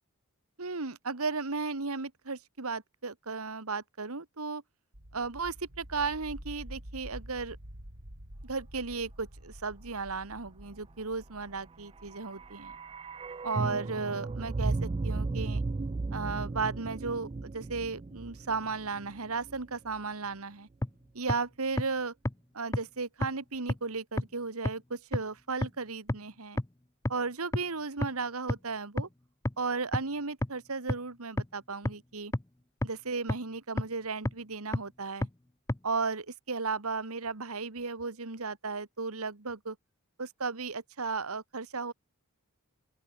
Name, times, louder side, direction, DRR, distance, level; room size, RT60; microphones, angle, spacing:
voice 1, 0.6-4.6 5.1-7.6 8.4-12.7 13.4-15.6 16.1-20.7 21.1-22.1 22.5-26.6 27.1-29.1 29.6-32.3 32.8-35.3 35.8-39.8 40.2-41.9, right 4 dB, 75° right, 1.6 m, -35 dB
sound 1, 4.9-15.6, equal, 90° right, 5.7 m, -49 dB
sound 2, 11.9-20.0 20.2-20.3, right 3 dB, 25° right, 0.3 m, -35 dB
sound 3, 20.8-20.9 21.3-21.4 21.8-21.9 22.3-22.4 22.7-22.8 23.2-23.3 23.7-23.8 24.2-24.3 24.7-24.8 25.1-25.2 25.6-25.7 26.1-26.2 26.6-26.7 27.1-27.2 27.5-27.6 28.0-28.1 28.5-28.6 29.0-29.1 29.5-29.6 29.9-30.0 30.4-30.5 30.9-31.0 31.4-31.5 31.9-32.0 32.3-32.4 32.8-32.9 33.3-33.4 33.8-33.9 34.3-34.4 34.7-34.8 35.2-35.3 35.7-35.8, left 1 dB, 15° left, 0.6 m, -28 dB
open air
head